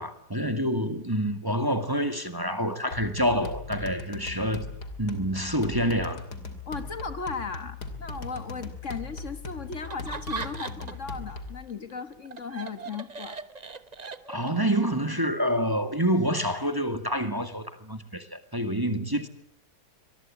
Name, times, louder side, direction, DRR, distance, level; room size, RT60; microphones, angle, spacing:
voice 1, 0.0-4.6 5.0-6.3 14.3-19.3, equal, 15° right, 1.8 m, -27 dB
sound 1, 2.9-11.6, left 3 dB, 85° left, 3.4 m, -39 dB
voice 2, 6.7-13.4, left 5 dB, 50° left, 1.8 m, -36 dB
Laughter, 9.8-11.1 11.5-14.7, right 4 dB, 30° right, 1.0 m, -39 dB
24.0 x 21.5 x 8.6 m
omnidirectional pair, 1.7 m